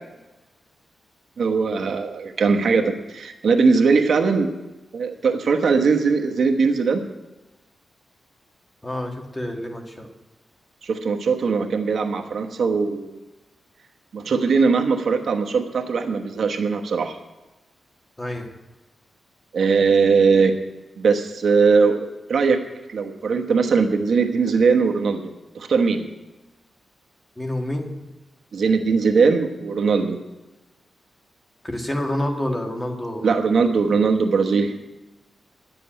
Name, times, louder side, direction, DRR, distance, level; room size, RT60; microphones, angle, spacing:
voice 1, 1.4-4.5 4.9-7.0 10.8-13.2 14.1-17.2 19.5-20.5 21.0-22.0 22.3-22.6 22.9-26.0 28.5-30.2 33.2-34.7, right 5 dB, 65° right, 4 dB, 1.1 m, -20 dB
voice 2, 8.8-10.1 18.2-18.5 27.4-28.0 31.6-33.3, left 1 dB, 15° left, 2 dB, 1.7 m, -28 dB
11.0 x 7.6 x 8.8 m, 1.1 s
wide cardioid pair, 115°, 0 cm